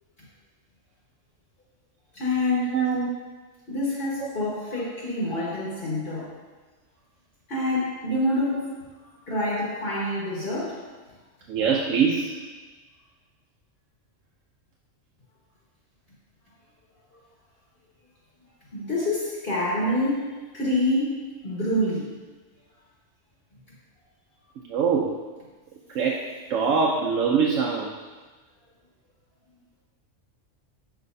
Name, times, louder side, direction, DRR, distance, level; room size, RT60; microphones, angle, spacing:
voice 1, 2.1-2.7 3.7-6.3 7.5-8.7 9.3-10.8 18.7-22.1, left 1 dB, 50° left, -7 dB, 1.6 m, -27 dB
voice 2, 2.7-3.1 4.2-4.3 11.5-12.3 24.7-25.2 25.9-26.2 26.5-27.9, right 5 dB, 80° right, -2 dB, 1.0 m, -23 dB
7.4 x 4.8 x 2.6 m, 1.3 s
omnidirectional pair, 1.3 m